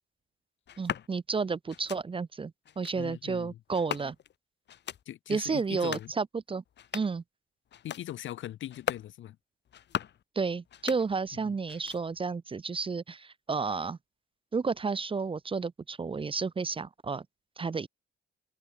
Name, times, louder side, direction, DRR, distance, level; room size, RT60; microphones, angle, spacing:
sound 1, 0.7-1.1 1.7-2.0 2.7-3.0 3.7-4.4 4.7-5.0 5.7-6.1 6.7-7.2 7.7-8.1 8.7-9.1 9.7-10.2 10.7-11.4 11.7-12.2, left 10 dB, 60° left, 1.9 m, -39 dB
voice 1, 0.8-4.2 5.3-6.6 6.9-7.2 10.4-14.0 14.5-17.2 17.6-17.9, right 4 dB, 25° right, 0.8 m, -31 dB
voice 2, 2.9-3.6 5.1-6.1 7.8-9.4 11.3-11.6, left 12 dB, 75° left, 3.1 m, -40 dB
cardioid pair, 90°, 20 cm